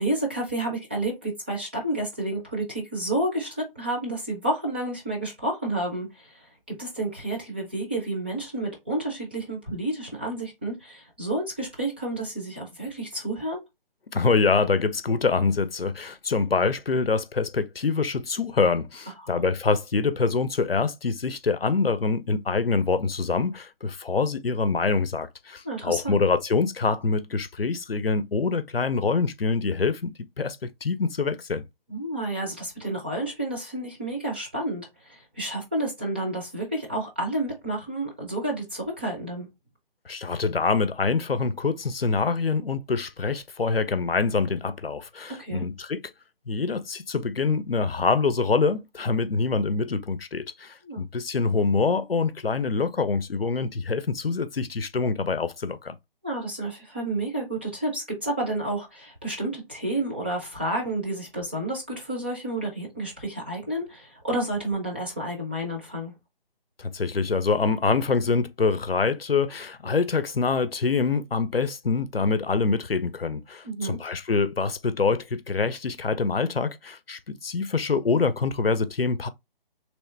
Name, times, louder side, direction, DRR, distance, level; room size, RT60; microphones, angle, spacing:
voice 1, 0.0-13.6 19.2-19.4 25.6-26.2 31.9-39.5 45.4-45.6 50.8-51.0 56.2-66.1 73.6-74.0, right 1 dB, 10° right, 0.5 m, -30 dB
voice 2, 14.1-31.6 40.1-46.0 46.5-56.0 66.8-79.3, left 4 dB, 80° left, 0.6 m, -25 dB
3.2 x 3.1 x 3.2 m
figure-of-eight pair, 150°, 29 cm